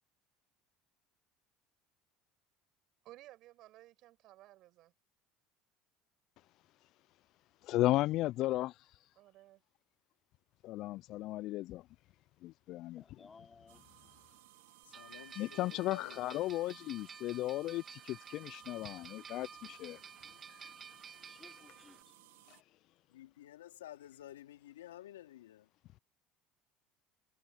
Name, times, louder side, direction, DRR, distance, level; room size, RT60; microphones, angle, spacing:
voice 1, 3.0-4.9 9.2-9.6, right 16 dB, 60° right, 5.4 m, -57 dB
voice 2, 7.6-8.7 10.6-11.8 12.4-13.0 15.4-20.0, left 16 dB, 60° left, 0.4 m, -35 dB
voice 3, 13.0-13.9 16.1-16.2 21.2-22.2, left 4 dB, 25° left, 4.5 m, -59 dB
sound 1, 13.7-22.6, right 21 dB, 80° right, 4.3 m, -62 dB
voice 4, 14.8-16.8 23.1-25.7, left 13 dB, 85° left, 2.9 m, -53 dB
sound 2, 14.9-22.0, right 6 dB, 35° right, 2.3 m, -52 dB
hypercardioid pair, 75°, 0 cm